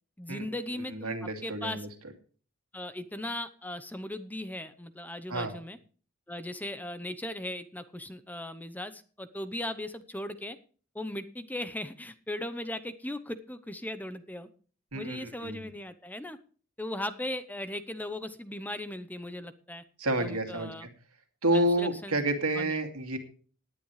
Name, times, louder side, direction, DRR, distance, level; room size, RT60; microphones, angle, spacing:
voice 1, 0.2-1.8 2.7-5.8 6.3-10.6 10.9-14.5 14.9-16.4 16.8-19.8 20.2-20.9 21.5-22.2 22.6-22.8, left 1 dB, 10° left, 12 dB, 0.8 m, -38 dB
voice 2, 0.9-1.9 5.3-5.5 14.9-15.7 20.0-20.9 21.4-23.2, right 1 dB, 85° right, 6 dB, 2.6 m, -29 dB
18.5 x 10.0 x 3.3 m, 0.41 s
head